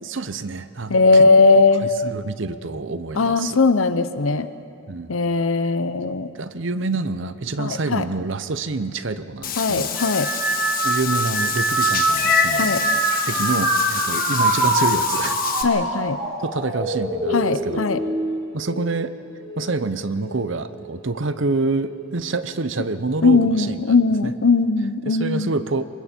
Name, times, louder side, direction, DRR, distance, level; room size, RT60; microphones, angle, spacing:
voice 1, 0.0-1.2 1.8-3.6 4.9-5.2 6.4-9.9 10.8-15.4 16.4-17.8 18.5-19.1 19.6-24.0 24.2-24.3 25.1-25.8, right 3 dB, 65° right, 12 dB, 0.8 m, -27 dB
voice 2, 0.9-1.9 3.2-4.5 5.1-6.3 7.6-8.0 9.6-10.3 12.6-12.8 15.6-16.2 17.3-18.0 23.2-25.5, left 3 dB, 80° left, 12 dB, 0.8 m, -18 dB
Meow / Water / Bathtub (filling or washing), 9.4-15.6, left 8 dB, 45° left, 1.4 m, -27 dB
sound 1, 9.9-19.6 20.0-20.6 21.6-21.9, right 2 dB, 30° right, 6.4 m, -24 dB
28.5 x 24.5 x 4.5 m, 2.6 s
head